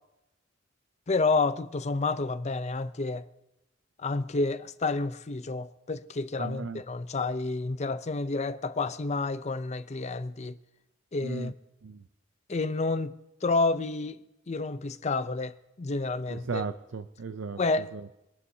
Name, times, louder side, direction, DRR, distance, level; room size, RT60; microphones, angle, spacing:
voice 1, 1.1-3.3 4.0-10.6 11.1-11.5 12.5-14.2 14.5-16.6 17.6-17.9, left 3 dB, 35° left, 0.6 m, -29 dB
voice 2, 6.4-6.8 11.2-11.5 11.8-12.0 16.3-18.3, right 4 dB, 75° right, 0.6 m, -37 dB
24.0 x 11.0 x 2.8 m
head